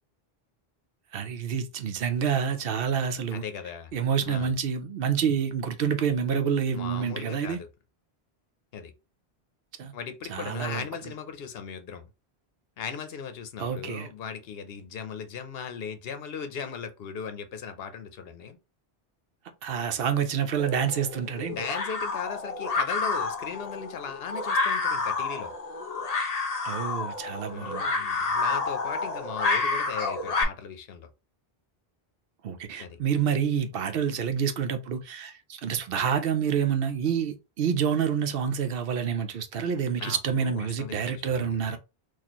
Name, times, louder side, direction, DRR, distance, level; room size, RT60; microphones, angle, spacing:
voice 1, 1.1-3.4 3.9-7.6 9.8-9.9 10.3-10.8 13.6-14.1 19.6-21.6 26.6-27.8 32.4-41.8, right 7 dB, 70° right, 0.7 m, -28 dB
voice 2, 3.3-3.9 4.3-4.6 6.7-7.7 8.7-8.9 9.9-12.1 12.8-18.6 21.5-25.5 27.4-31.1 32.8-33.0 40.0-41.8, left 6 dB, 75° left, 0.8 m, -38 dB
sound 1, 20.6-30.4, left 3 dB, 45° left, 0.6 m, -29 dB
4.2 x 2.4 x 2.9 m
omnidirectional pair, 1.0 m